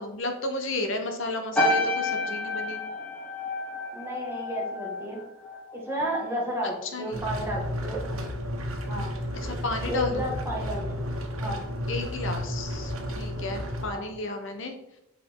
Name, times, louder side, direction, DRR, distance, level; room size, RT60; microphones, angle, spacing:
voice 1, 0.0-2.8 6.8-7.3 9.4-10.2 11.9-14.7, left 2 dB, 60° left, 5 dB, 0.9 m, -33 dB
sound 1, 1.5-6.2 6.4-6.8, left 2 dB, 5° left, 2.0 m, -30 dB
voice 2, 3.9-5.2 5.7-8.0 8.9-9.1 9.9-11.0 11.4-11.6 13.9-14.0, equal, 10° right, -4 dB, 1.7 m, -32 dB
sound 2, 7.1-13.9, equal, 80° right, 1.2 m, -32 dB
7.9 x 4.7 x 3.7 m, 0.85 s
head